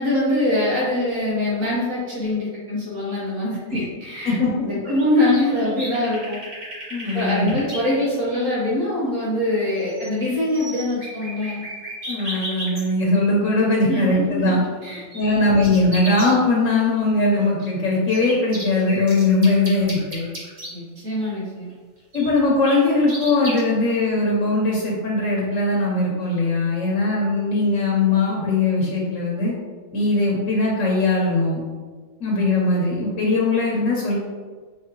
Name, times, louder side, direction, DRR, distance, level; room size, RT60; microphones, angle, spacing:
voice 1, 0.0-6.4 7.1-11.6 13.8-14.6 14.8-15.4 20.7-21.7, left 1 dB, 75° right, -7 dB, 1.6 m, -23 dB
sound 1, 4.9-7.8 9.4-9.5 9.8-10.2 10.5-12.8 14.6-16.3 17.6-20.7 22.1-23.6, equal, 35° right, 1.2 m, -34 dB
voice 2, 6.9-7.6 12.1-14.6 15.1-20.3 22.1-29.5 29.9-31.6 32.2-34.2, left 2 dB, 75° left, -4 dB, 1.3 m, -20 dB
5.6 x 3.1 x 3.0 m, 1.4 s
omnidirectional pair, 1.4 m